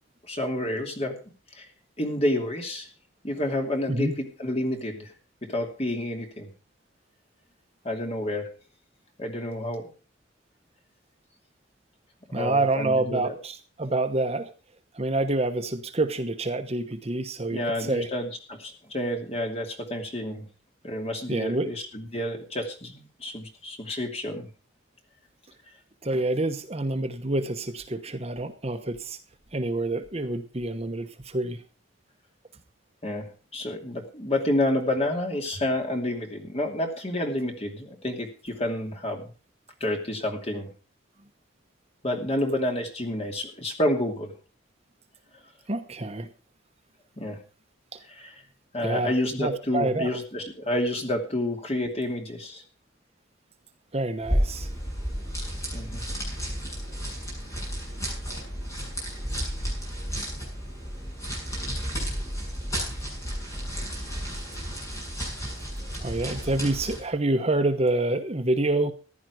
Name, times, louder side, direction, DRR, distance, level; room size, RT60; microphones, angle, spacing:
voice 1, 0.3-1.2 1.5-1.6 2.0-2.9 3.2-5.1 5.4-6.5 7.8-8.5 9.2-9.9 12.3-13.3 17.5-20.4 20.8-24.5 33.0-39.3 39.8-40.7 42.0-44.3 47.2-47.4 48.1-48.3 48.7-52.6 55.7-56.0, left 1 dB, 35° left, 3 dB, 2.7 m, -29 dB
voice 2, 12.3-14.5 14.9-18.1 21.3-21.7 26.0-29.2 29.5-31.6 45.7-46.3 47.9-48.0 48.8-50.1 53.9-54.7 66.0-68.9, right 2 dB, 35° right, 7 dB, 1.1 m, -27 dB
sound 1, 54.2-67.1, equal, 15° left, 7.2 m, -32 dB
15.0 x 10.5 x 4.8 m, 0.36 s
head